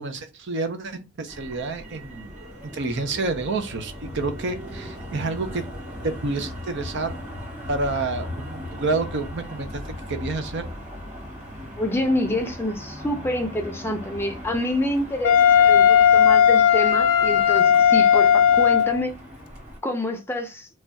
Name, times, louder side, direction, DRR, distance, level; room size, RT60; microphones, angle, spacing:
voice 1, 0.0-2.3 2.7-5.6 6.0-7.2 7.7-9.8 10.1-10.7, right 3 dB, 55° right, 0.6 m, -29 dB
Motor vehicle (road), 1.3-19.8, left 1 dB, 35° right, 1.8 m, -38 dB
voice 2, 11.8-19.1 19.8-20.7, left 1 dB, 10° left, 0.5 m, -27 dB
Wind instrument woodwind instrument, 15.2-19.0, left 8 dB, 90° left, 0.4 m, -16 dB
3.2 x 2.3 x 3.9 m
head